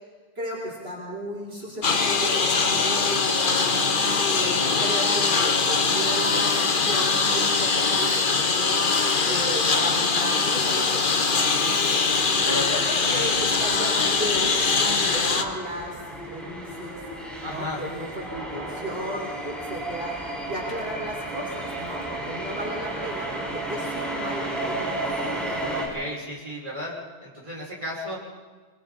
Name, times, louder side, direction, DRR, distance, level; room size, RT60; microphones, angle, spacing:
voice 1, 0.3-3.9 4.4-8.8 9.3-11.8 12.4-17.0 17.4-25.0, equal, 70° right, -5 dB, 5.1 m, -34 dB
Engine, 1.8-15.4, left 4 dB, 55° left, 1.3 m, -22 dB
sound 1, 12.1-25.9, right 1 dB, ahead, 5.6 m, -33 dB
voice 2, 17.4-17.8 25.7-27.0 27.2-28.2, equal, 35° right, -6 dB, 6.6 m, -34 dB
25.5 x 24.0 x 4.3 m, 1.4 s
omnidirectional pair, 1.1 m